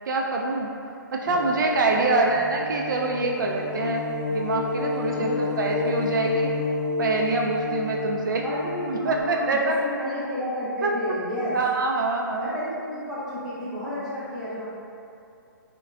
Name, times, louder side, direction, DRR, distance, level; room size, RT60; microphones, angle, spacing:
voice 1, 0.1-0.7 1.1-6.5 7.0-8.4 8.9-9.7 10.8-10.9 11.5-12.5, right 3 dB, 60° right, 0 dB, 0.4 m, -25 dB
sound 1, 1.3-9.2, left 3 dB, 45° left, 0.5 m, -30 dB
voice 2, 1.9-2.4 5.1-5.6 8.4-11.6 12.4-14.7, left 1 dB, 5° right, -13 dB, 0.7 m, -31 dB
5.0 x 2.2 x 2.5 m, 2.6 s
hypercardioid pair, 160°, 12 cm